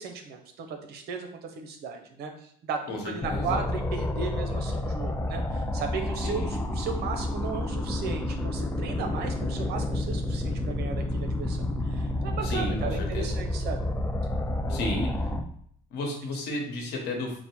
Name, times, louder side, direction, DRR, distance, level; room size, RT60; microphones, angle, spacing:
voice 1, 0.0-11.6 11.8-13.8 14.7-15.0, right 5 dB, 75° right, 5 dB, 0.8 m, -36 dB
voice 2, 2.9-3.6 6.2-6.6 12.4-13.4 14.7-15.1 15.9-17.4, left 2 dB, 85° left, 1 dB, 1.1 m, -33 dB
sound 1, 3.2-15.4, left 1 dB, 15° left, 0.4 m, -30 dB
4.2 x 2.2 x 4.3 m, 0.63 s
cardioid pair, 110°, 17 cm